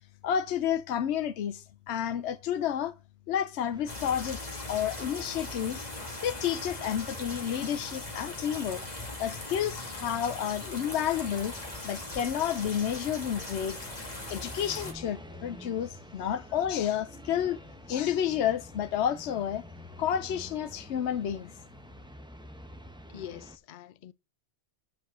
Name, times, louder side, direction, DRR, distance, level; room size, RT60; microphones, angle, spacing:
voice 1, 0.2-2.9 3.3-5.9 6.2-8.8 9.2-11.5 11.8-13.8 14.3-17.6 17.9-19.7 20.0-21.5, left 9 dB, 80° left, 0.9 m, -30 dB
sound 1, 3.7-23.6, equal, 5° right, 0.7 m, -49 dB
sound 2, 3.9-14.9, left 2 dB, 40° left, 1.7 m, -40 dB
voice 2, 23.1-24.1, left 11 dB, 55° left, 0.7 m, -44 dB
9.2 x 4.4 x 6.5 m
omnidirectional pair, 1.1 m